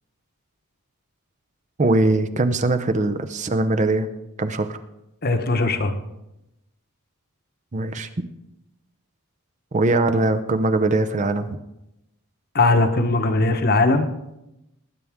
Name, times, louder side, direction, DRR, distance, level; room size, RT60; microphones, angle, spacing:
voice 1, 1.8-4.1 4.4-4.8 7.7-8.1 9.7-11.6, right 2 dB, 35° right, 9 dB, 0.6 m, -21 dB
voice 2, 5.2-5.9 12.5-14.1, left 2 dB, 45° left, 7 dB, 1.0 m, -19 dB
19.5 x 9.4 x 3.6 m, 0.91 s
head